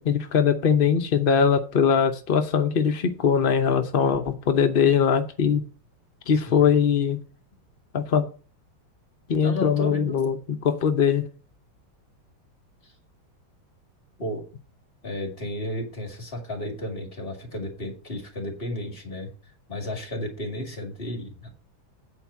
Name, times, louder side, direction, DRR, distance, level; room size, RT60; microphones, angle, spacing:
voice 1, 0.0-5.6 6.3-7.2 7.9-8.2 9.3-10.4 10.6-11.3, left 7 dB, 65° left, 6 dB, 0.5 m, -21 dB
voice 2, 9.4-10.1 12.8-12.9 14.2-14.4 15.0-19.3 19.7-21.5, left 1 dB, 30° left, 2 dB, 2.6 m, -33 dB
8.9 x 4.6 x 7.1 m, 0.36 s
omnidirectional pair, 2.2 m